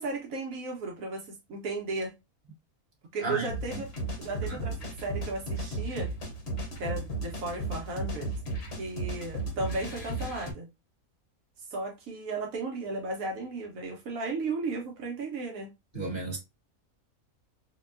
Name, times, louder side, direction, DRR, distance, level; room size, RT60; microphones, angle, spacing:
voice 1, 0.0-2.1 3.1-3.9 4.2-6.1 6.8-8.3 8.8-10.7 11.7-15.7, right 3 dB, 75° right, 1.1 m, -35 dB
voice 2, 3.2-3.8 4.5-4.6 15.9-16.4, right 3 dB, 20° right, 1.2 m, -34 dB
sound 1, 3.5-10.5, right 2 dB, 50° left, 1.1 m, -35 dB
3.9 x 2.2 x 2.4 m
omnidirectional pair, 1.5 m